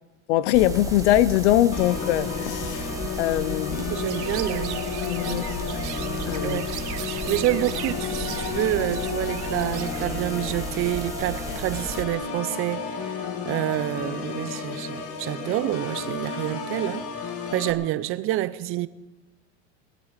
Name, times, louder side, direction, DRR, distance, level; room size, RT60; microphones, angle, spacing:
voice 1, 0.3-2.9 3.2-3.9 5.0-5.5 6.3-6.6, left 14 dB, 75° left, 0.8 m, -22 dB
sound 1, 0.5-12.0, right 2 dB, 10° right, 1.5 m, -35 dB
Organ, 1.7-17.7, left 6 dB, 45° left, 2.1 m, -32 dB
voice 2, 3.8-4.9 5.2-5.5 6.4-6.7 7.3-17.1 17.5-18.9, right 15 dB, 40° right, 0.7 m, -28 dB
Chirp tweet, 4.1-10.9, right 15 dB, 80° right, 1.1 m, -39 dB
20.5 x 8.4 x 7.4 m
supercardioid pair, 130°, 34 cm